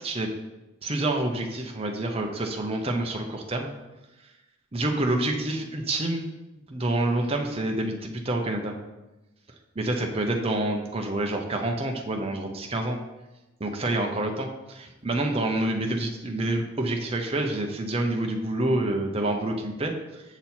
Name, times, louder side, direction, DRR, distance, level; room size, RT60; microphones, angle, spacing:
voice 1, 0.8-3.7 4.7-6.3 6.7-8.7 9.8-13.0 13.6-20.2, right 1 dB, 25° right, 2 dB, 0.7 m, -27 dB
7.0 x 6.0 x 4.3 m, 1.0 s
head